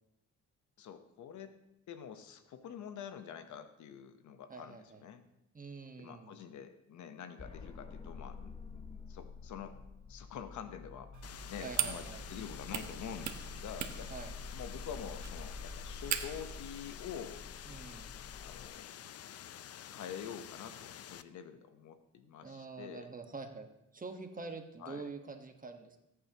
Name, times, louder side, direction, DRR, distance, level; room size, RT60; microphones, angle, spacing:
voice 1, 0.8-1.6 1.9-5.3 6.0-9.8 10.1-14.1 14.5-17.4 18.4-18.9 19.9-23.1 24.8-25.1, left 8 dB, 70° left, 9 dB, 1.0 m, -47 dB
voice 2, 4.5-5.0 5.5-6.3 11.6-12.2 14.1-14.3 17.7-18.1 22.4-23.7 23.9-26.0, right 4 dB, 25° right, 5 dB, 1.3 m, -46 dB
sound 1, 7.4-18.7, left 5 dB, 20° left, 0.9 m, -49 dB
sound 2, 11.1-16.6, right 9 dB, 70° right, 1.1 m, -41 dB
sound 3, 11.2-21.2, left 10 dB, 55° left, 0.6 m, -49 dB
18.5 x 8.7 x 3.0 m, 0.86 s
cardioid pair, 90°, 30 cm